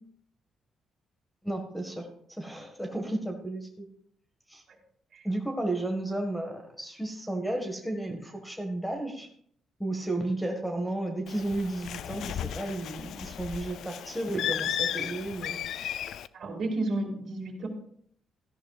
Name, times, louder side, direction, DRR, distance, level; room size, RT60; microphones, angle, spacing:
voice 1, 1.4-2.1 2.4-3.9 4.5-4.6 5.2-9.3 9.8-15.6, right 1 dB, 5° left, 3 dB, 1.7 m, -33 dB
Bird, 11.3-16.3, left 10 dB, 75° left, 0.3 m, -34 dB
voice 2, 16.3-17.7, right 2 dB, 60° right, -2 dB, 2.4 m, -32 dB
13.5 x 11.0 x 2.4 m, 0.64 s
cardioid pair, 90°, 0 cm